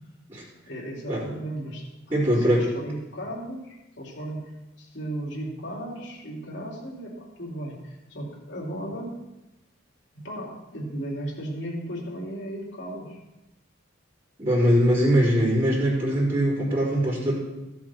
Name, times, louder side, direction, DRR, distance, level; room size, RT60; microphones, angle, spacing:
voice 1, 0.7-4.5 4.8-9.2 10.2-13.2, right 1 dB, 65° left, -3 dB, 3.1 m, -35 dB
voice 2, 2.1-2.7 14.4-17.3, equal, 25° right, -11 dB, 3.6 m, -22 dB
15.5 x 7.4 x 4.4 m, 0.96 s
head